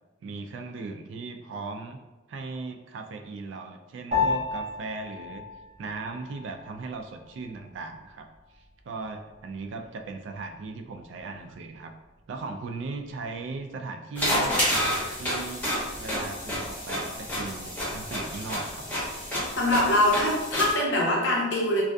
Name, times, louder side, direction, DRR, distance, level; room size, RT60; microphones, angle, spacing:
voice 1, 0.2-2.0 2.3-5.4 5.8-8.3 8.5-11.9 12.3-18.9, right 3 dB, 75° right, 5 dB, 0.3 m, -38 dB
Piano, 4.1-13.7, left 5 dB, 35° right, 0.6 m, -36 dB
sound 1, 14.2-20.7, equal, 10° left, 0.7 m, -29 dB
voice 2, 19.6-21.8, left 1 dB, 70° left, -3 dB, 0.7 m, -23 dB
2.5 x 2.4 x 2.2 m, 1.1 s
head